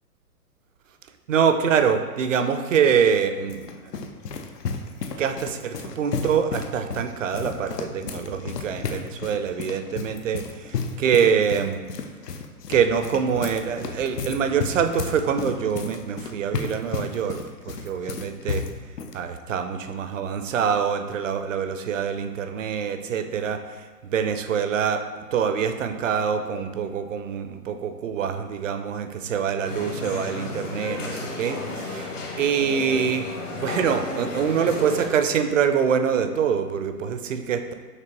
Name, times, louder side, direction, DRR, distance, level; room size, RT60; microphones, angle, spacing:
voice 1, 1.3-4.1 5.2-11.8 12.7-18.6 19.1-25.0 25.3-33.2 33.6-37.7, right 7 dB, 55° right, 8 dB, 0.5 m, -25 dB
sound 1, 3.1-19.2, left 5 dB, 80° left, 0.6 m, -33 dB
sound 2, 29.6-35.1, left 2 dB, 50° left, 1.0 m, -33 dB
5.9 x 2.8 x 3.0 m, 1.4 s
figure-of-eight pair, 125°, 47 cm